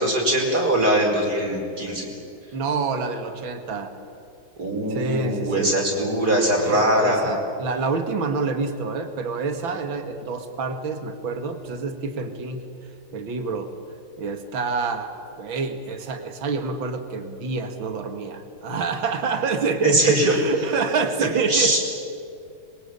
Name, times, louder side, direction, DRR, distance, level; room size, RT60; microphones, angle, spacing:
voice 1, 0.0-2.1 4.6-7.3 19.8-20.4 21.5-21.8, right 1 dB, 50° right, 0 dB, 5.5 m, -21 dB
voice 2, 2.5-3.9 4.9-5.8 6.6-12.6 13.1-13.7 14.2-15.1 15.4-21.8, right 4 dB, 70° right, 7 dB, 2.6 m, -27 dB
26.5 x 22.5 x 8.8 m, 2.6 s
omnidirectional pair, 2.3 m